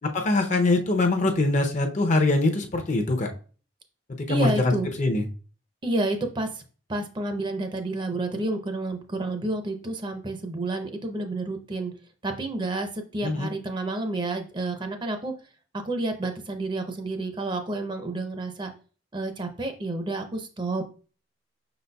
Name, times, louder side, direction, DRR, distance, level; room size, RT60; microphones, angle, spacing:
voice 1, 0.0-3.3 4.3-4.7 5.0-5.2 13.2-13.5, left 2 dB, 40° left, 5 dB, 0.5 m, -23 dB
voice 2, 4.3-4.9 5.8-6.6 6.9-11.9 12.2-15.3 15.7-18.7 19.1-20.9, right 2 dB, 25° right, 6 dB, 0.5 m, -30 dB
5.7 x 4.0 x 2.2 m, 0.38 s
head